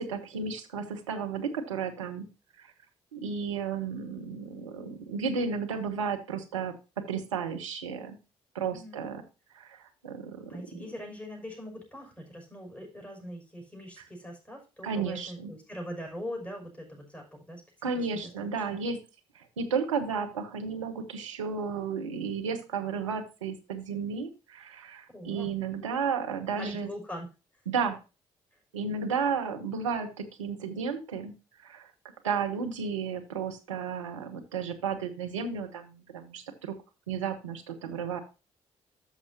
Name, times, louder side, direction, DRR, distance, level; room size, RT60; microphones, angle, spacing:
voice 1, 0.0-2.3 2.6-2.7 3.1-6.7 7.1-8.2 8.5-9.2 9.5-10.8 14.8-15.5 17.8-19.0 19.3-26.9 27.7-28.0 28.7-31.3 31.6-31.9 32.2-36.7 37.1-38.2, right 6 dB, 85° right, 5 dB, 0.9 m, -33 dB
voice 2, 8.7-9.1 10.5-17.6 17.9-18.2 18.7-18.8 25.1-25.5 26.5-27.3, equal, 10° left, 1 dB, 6.0 m, -42 dB
13.0 x 6.1 x 2.8 m, 0.30 s
hypercardioid pair, 45°, 16 cm